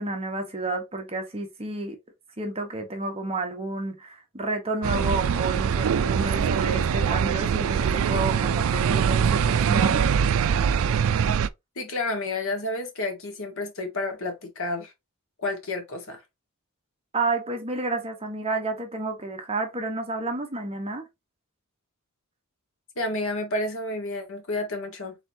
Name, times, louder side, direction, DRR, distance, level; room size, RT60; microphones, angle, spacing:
voice 1, 0.0-2.0 2.4-10.0 17.1-21.1, right 2 dB, 25° right, 1.0 m, -30 dB
sound 1, 4.8-11.5, right 7 dB, 65° right, 0.4 m, -23 dB
voice 2, 11.7-14.9 15.4-16.2 22.9-25.2, left 2 dB, 65° left, 1.5 m, -30 dB
4.3 x 4.0 x 2.7 m
head